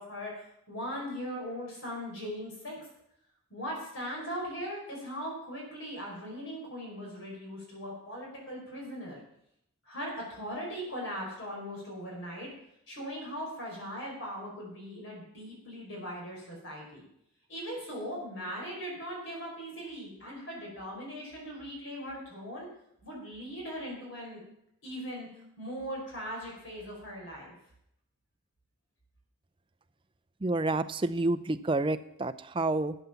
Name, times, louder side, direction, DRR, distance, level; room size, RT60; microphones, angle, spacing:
voice 1, 0.0-2.9 3.5-9.2 9.9-12.5 12.9-17.0 17.5-22.7 23.0-24.4 24.8-25.3 25.6-27.5, equal, 60° left, -2 dB, 5.1 m, -39 dB
voice 2, 30.4-33.0, right 2 dB, 25° right, 11 dB, 0.5 m, -29 dB
12.0 x 8.1 x 7.0 m, 0.76 s
head